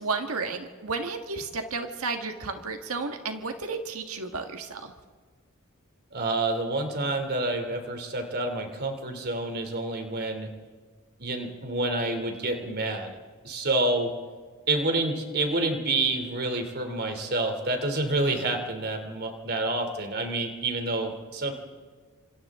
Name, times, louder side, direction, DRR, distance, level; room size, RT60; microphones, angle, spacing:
voice 1, 0.0-4.9, right 4 dB, 90° right, 5 dB, 1.7 m, -32 dB
voice 2, 6.1-10.5 11.2-13.1 13.4-14.1 14.7-21.5, right 2 dB, 50° right, 5 dB, 3.0 m, -28 dB
29.5 x 26.5 x 3.7 m, 1.5 s
head